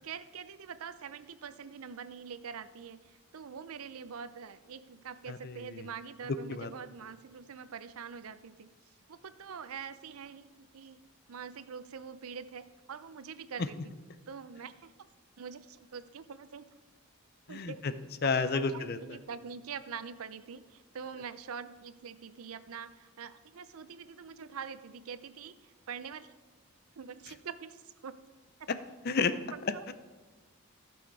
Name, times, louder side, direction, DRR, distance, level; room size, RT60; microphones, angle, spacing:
voice 1, 0.0-8.7 9.1-11.0 11.3-13.9 14.3-14.9 15.4-16.7 17.5-17.9 18.5-26.3 27.0-28.2 28.6-28.7 29.5-29.8, right 6 dB, 80° right, 13 dB, 0.5 m, -44 dB
voice 2, 5.3-5.8 6.5-6.7 17.5-17.9 18.2-19.0 29.0-29.3 29.9-30.0, left 4 dB, 45° left, 12 dB, 0.5 m, -31 dB
14.5 x 6.3 x 4.7 m, 1.3 s
head